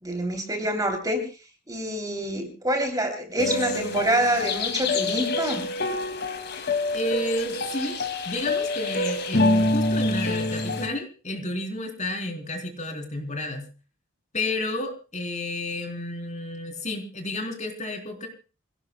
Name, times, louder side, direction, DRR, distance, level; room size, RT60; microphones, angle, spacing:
voice 1, 0.0-1.2 1.7-5.6, right 1 dB, 15° right, 5 dB, 3.0 m, -26 dB
sound 1, 3.4-10.9, left 2 dB, 50° left, 2.3 m, -26 dB
voice 2, 6.9-13.7 14.3-18.3, left 1 dB, 35° left, 5 dB, 3.7 m, -31 dB
27.0 x 17.5 x 2.2 m, 0.35 s
head